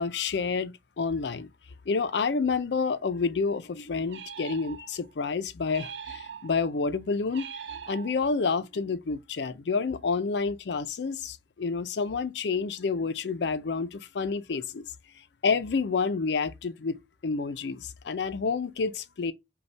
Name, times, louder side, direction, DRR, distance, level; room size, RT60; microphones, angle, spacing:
voice 1, 0.0-1.5 1.9-7.5 7.9-14.9 15.4-19.3, left 4 dB, 80° left, 0.5 m, -29 dB
sound 1, 4.1-5.1 5.7-6.7 7.3-8.5, right 7 dB, 80° right, 0.5 m, -42 dB
5.2 x 2.3 x 3.2 m
head